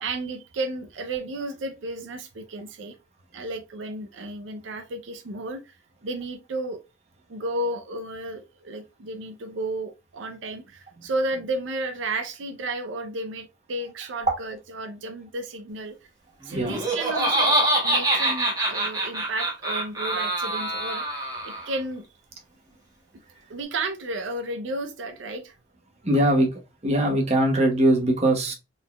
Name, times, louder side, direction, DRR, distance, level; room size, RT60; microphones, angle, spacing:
voice 1, 0.0-3.0 3.3-5.8 6.0-6.8 7.3-16.0 16.4-22.0 23.5-25.6, right 2 dB, 85° right, 0.5 m, -33 dB
Laughter, 16.5-21.8, right 1 dB, 20° right, 1.4 m, -25 dB
voice 2, 26.0-26.5 26.8-28.5, right 1 dB, 35° right, 1.1 m, -21 dB
3.9 x 3.7 x 2.2 m
head